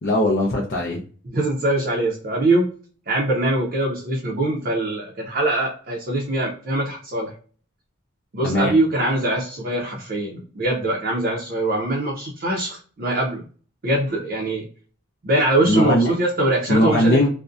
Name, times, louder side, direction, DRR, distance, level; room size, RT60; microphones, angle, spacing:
voice 1, 0.0-1.0 8.4-8.7 15.7-16.1 16.7-17.3, left 1 dB, 55° left, -2 dB, 0.5 m, -19 dB
voice 2, 1.3-2.7 3.1-7.3 8.3-13.4 13.8-14.7 15.2-17.3, right 1 dB, 50° right, -2 dB, 0.5 m, -22 dB
2.6 x 2.1 x 2.3 m, 0.42 s
head